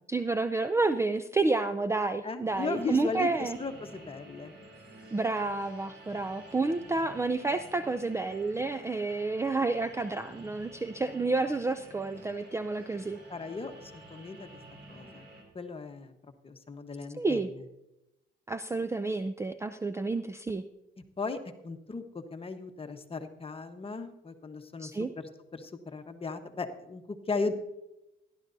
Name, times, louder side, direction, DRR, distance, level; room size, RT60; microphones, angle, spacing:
voice 1, 0.1-3.6 5.1-13.2 17.1-17.5 18.5-20.6 24.8-25.1, right 3 dB, 15° right, 10 dB, 0.4 m, -30 dB
voice 2, 2.2-4.5 13.3-14.5 14.9-15.2 15.5-16.1 16.4-17.5 21.2-27.5, left 4 dB, 30° left, 6 dB, 1.1 m, -37 dB
sound 1, 2.5-15.4, right 1 dB, 60° right, 3.8 m, -51 dB
17.0 x 11.5 x 2.7 m, 0.92 s
cardioid pair, 90°, 20 cm